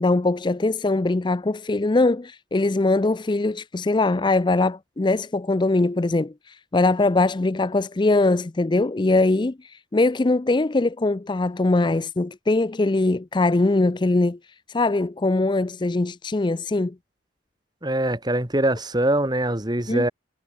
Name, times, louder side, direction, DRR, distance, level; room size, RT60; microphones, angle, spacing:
voice 1, 0.0-14.4 14.7-17.0 19.9-20.1, left 2 dB, 25° left, 0.4 m, -22 dB
voice 2, 17.8-20.1, right 1 dB, 20° right, 2.3 m, -23 dB
head